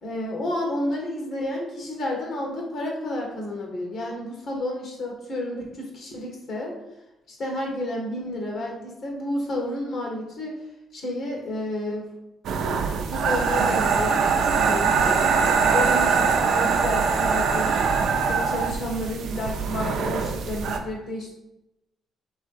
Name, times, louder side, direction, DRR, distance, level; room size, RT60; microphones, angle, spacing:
voice 1, 0.0-6.7 7.3-10.5 10.9-12.1 13.1-15.3 15.7-17.8 18.2-21.3, left 1 dB, 60° left, -1 dB, 1.4 m, -31 dB
sound 1, 12.4-20.8, right 5 dB, 75° right, 0.5 m, -22 dB
3.5 x 3.1 x 4.7 m, 0.93 s
cardioid pair, 90°, 0 cm